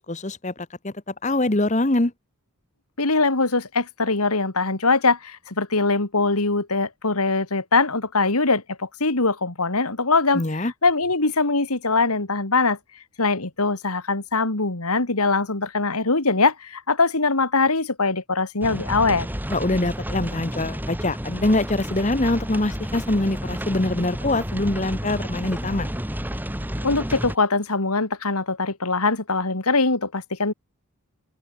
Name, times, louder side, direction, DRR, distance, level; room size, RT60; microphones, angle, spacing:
voice 1, 0.1-2.1 10.3-10.7 19.5-25.9, left 2 dB, 30° left, 1.2 m, -24 dB
voice 2, 3.0-12.8 13.2-19.3 26.8-30.5, left 3 dB, 85° left, 2.8 m, -22 dB
sound 1, 18.6-27.3, equal, 10° right, 5.5 m, -31 dB
open air
head